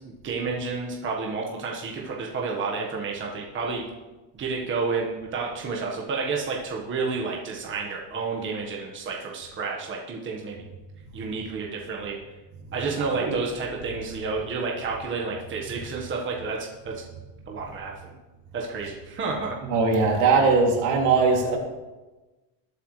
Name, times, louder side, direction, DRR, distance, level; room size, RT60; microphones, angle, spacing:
voice 1, 0.2-3.8 4.4-10.5 11.1-12.2 12.7-17.0 17.5-18.1 18.5-19.6, right 4 dB, 25° right, -2 dB, 1.4 m, -30 dB
voice 2, 19.7-21.6, right 4 dB, 60° right, 0 dB, 2.9 m, -20 dB
20.5 x 8.1 x 3.3 m, 1.1 s
cardioid pair, 150°, 49 cm